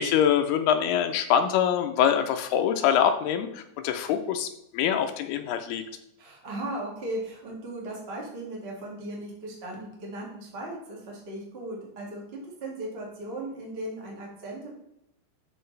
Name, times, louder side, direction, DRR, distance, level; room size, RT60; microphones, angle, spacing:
voice 1, 0.0-5.8, left 9 dB, 80° left, 6 dB, 2.3 m, -24 dB
voice 2, 6.2-12.2 12.6-14.7, right 1 dB, 60° right, -3 dB, 0.6 m, -37 dB
12.5 x 5.3 x 3.2 m, 0.80 s
omnidirectional pair, 5.1 m